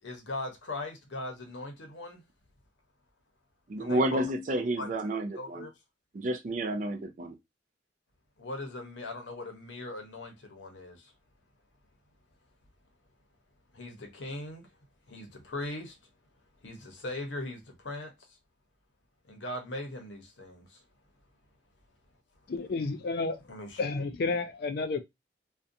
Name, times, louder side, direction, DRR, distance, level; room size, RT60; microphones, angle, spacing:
voice 1, 0.0-2.2 3.8-4.3 4.8-4.9 5.1-5.7 8.4-11.1 13.7-14.7 15.1-16.0 16.6-18.4 19.3-20.8 23.5-23.8, left 2 dB, 75° left, 0.8 m, -40 dB
voice 2, 3.7-5.7 6.1-7.4, right 1 dB, 40° right, 0.4 m, -30 dB
voice 3, 22.5-23.5 23.8-25.0, left 3 dB, 55° left, 0.4 m, -31 dB
2.5 x 2.2 x 2.6 m
head